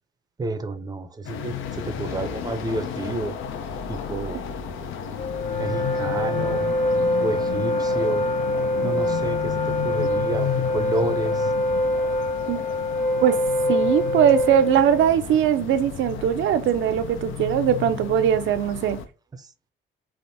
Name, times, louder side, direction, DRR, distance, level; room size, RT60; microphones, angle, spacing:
voice 1, 0.4-3.4 3.9-4.4 5.6-6.8 7.2-8.3 8.8-11.5 19.4-19.5, right 2 dB, 20° right, 0.5 m, -30 dB
sound 1, 1.2-19.0, left 9 dB, 80° left, 0.5 m, -33 dB
Wind instrument woodwind instrument, 5.2-15.1, left 1 dB, 35° left, 0.8 m, -24 dB
voice 2, 13.7-19.0, right 9 dB, 75° right, 0.5 m, -20 dB
3.4 x 2.4 x 2.7 m
cardioid pair, 90°, 20 cm